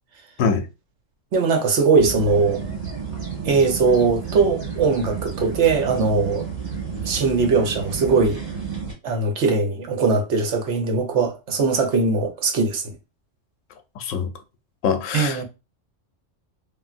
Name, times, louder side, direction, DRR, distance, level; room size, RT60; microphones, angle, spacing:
voice 1, 1.3-2.6 3.4-6.5 7.0-8.4 9.0-12.9 15.1-15.4, right 4 dB, 65° right, 1.0 m, -20 dB
sound 1, 2.0-8.9, right 6 dB, 45° right, 1.8 m, -31 dB
voice 2, 14.0-14.3 14.8-15.4, left 6 dB, 80° left, 0.9 m, -23 dB
3.4 x 2.5 x 2.4 m
omnidirectional pair, 1.3 m